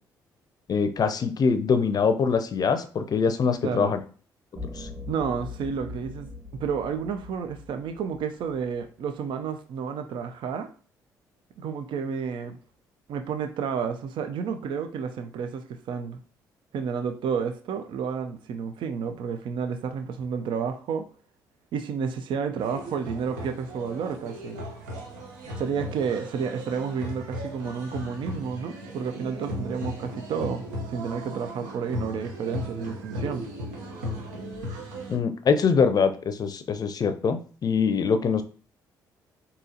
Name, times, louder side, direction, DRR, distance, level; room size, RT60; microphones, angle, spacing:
voice 1, 0.7-4.0 4.8-4.9 35.1-38.4, left 5 dB, 45° left, 9 dB, 0.5 m, -23 dB
voice 2, 3.6-4.0 5.1-10.7 11.6-12.6 13.1-16.2 16.7-21.1 21.7-24.6 25.6-33.5, right 6 dB, 60° right, 7 dB, 0.4 m, -31 dB
sound 1, 4.6-8.9, left 3 dB, 20° right, 1.2 m, -41 dB
sound 2, 22.6-35.2, equal, 85° right, 0.7 m, -37 dB
3.8 x 2.8 x 2.7 m, 0.40 s
hypercardioid pair, 50°, 9 cm